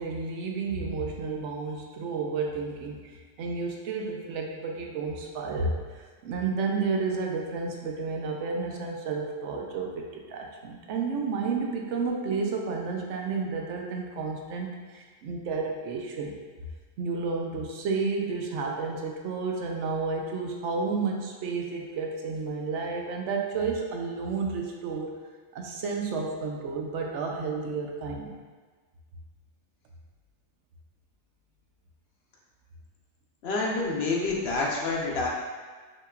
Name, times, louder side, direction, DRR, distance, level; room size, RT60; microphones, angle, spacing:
voice 1, 0.0-16.3 17.0-25.1 25.5-28.4, right 4 dB, 70° right, 1 dB, 0.8 m, -31 dB
voice 2, 33.4-35.3, left 3 dB, 55° left, -2 dB, 0.9 m, -28 dB
5.5 x 2.9 x 2.4 m, 1.4 s
omnidirectional pair, 1.4 m